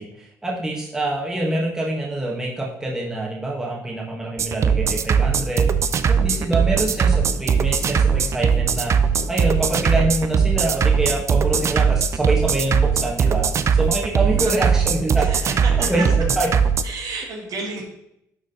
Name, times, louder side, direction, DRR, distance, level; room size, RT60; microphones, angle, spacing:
voice 1, 0.0-5.7 6.1-9.0 9.3-15.3 15.8-16.5, right 2 dB, 10° right, -3 dB, 1.7 m, -25 dB
sound 1, 4.4-16.8, right 6 dB, 45° right, 0.5 m, -19 dB
sound 2, 6.2-16.8, left 3 dB, 80° left, 2.4 m, -45 dB
voice 2, 6.2-6.7 9.5-10.0 14.4-14.7 15.1-16.1 16.8-17.8, right 3 dB, 60° right, 1 dB, 1.9 m, -33 dB
11.0 x 3.9 x 3.9 m, 0.78 s
cardioid pair, 105°, 7 cm